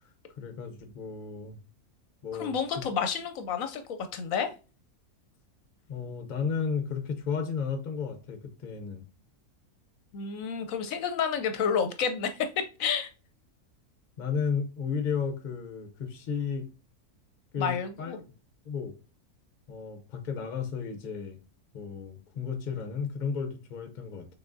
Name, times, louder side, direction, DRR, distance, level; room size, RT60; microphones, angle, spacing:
voice 1, 0.4-1.6 2.2-2.8 5.9-9.0 14.2-16.7 17.5-18.2 18.6-18.9 19.7-21.4 21.7-24.3, left 6 dB, 45° left, 0.6 m, -33 dB
voice 2, 2.3-4.5 10.1-12.5 12.8-13.1 17.6-18.2, left 6 dB, 70° left, 0.9 m, -30 dB
5.9 x 3.5 x 2.6 m
omnidirectional pair, 1.6 m